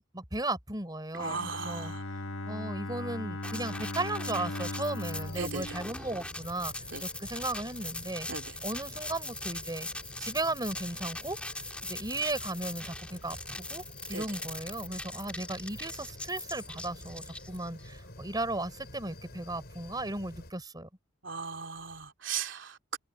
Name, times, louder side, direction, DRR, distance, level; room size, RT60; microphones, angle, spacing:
voice 1, 0.0-1.9 2.5-6.7 7.0-8.3 8.6-9.9 10.2-11.4 11.8-13.8 14.1-20.9, right 2 dB, 20° right, 3.9 m, -36 dB
Bowed string instrument, 1.1-7.1, left 2 dB, 85° left, 1.5 m, -39 dB
voice 2, 1.2-2.0 5.4-5.7 6.9-7.0 8.3-8.5 14.1-14.2 21.2-23.0, right 5 dB, 75° right, 2.9 m, -37 dB
sound 1, 3.4-17.9, left 2 dB, 5° left, 2.5 m, -41 dB
sound 2, 5.1-20.5, left 1 dB, 55° left, 6.7 m, -49 dB
open air
head